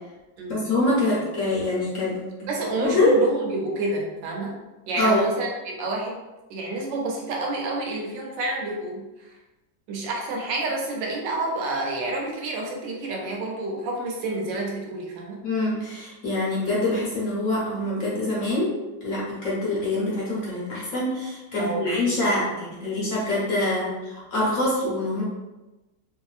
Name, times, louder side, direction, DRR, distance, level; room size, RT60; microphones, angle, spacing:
voice 1, 0.5-2.2 2.8-3.2 5.0-5.2 15.4-18.8 19.0-25.2, left 2 dB, 55° left, -6 dB, 1.0 m, -25 dB
voice 2, 2.4-4.6 4.9-6.2 6.5-9.3 9.9-15.4 21.6-22.7, right 2 dB, 90° right, -1 dB, 1.3 m, -29 dB
2.9 x 2.6 x 2.4 m, 1.1 s
omnidirectional pair, 1.9 m